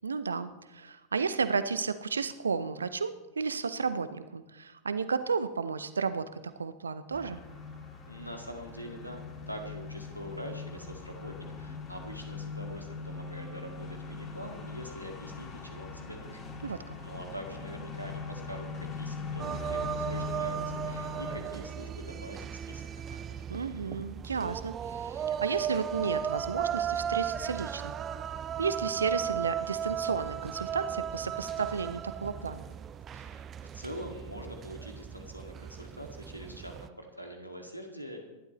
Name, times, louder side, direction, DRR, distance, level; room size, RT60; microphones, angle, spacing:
voice 1, 0.0-6.3 6.6-7.4 16.6-16.9 23.5-27.9 28.6-32.7, right 5 dB, 75° right, 13 dB, 0.7 m, -33 dB
sound 1, 7.1-21.4, left 4 dB, 30° left, 2.9 m, -41 dB
voice 2, 8.1-16.5 17.0-20.6 20.9-23.4 33.1-38.2, equal, 90° left, 3 dB, 2.0 m, -44 dB
sound 2, 19.4-36.9, right 8 dB, 25° right, 0.5 m, -36 dB
24.5 x 11.5 x 3.1 m, 1.1 s
figure-of-eight pair, 90°, 0 cm